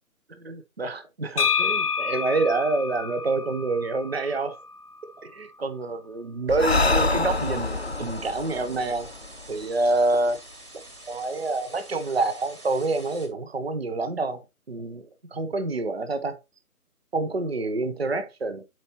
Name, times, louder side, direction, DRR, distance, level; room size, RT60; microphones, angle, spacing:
voice 1, 0.3-4.6 5.2-9.1 9.5-10.4 11.1-16.4 17.1-18.6, right 3 dB, 40° right, 0.7 m, -27 dB
sound 1, 1.4-5.2, left 6 dB, 80° left, 0.8 m, -29 dB
Breathing, 6.5-10.0, left 3 dB, 45° left, 0.5 m, -26 dB
sound 2, 7.3-13.3, right 1 dB, 75° right, 4.2 m, -47 dB
10.5 x 4.4 x 2.9 m
figure-of-eight pair, 155°, 46 cm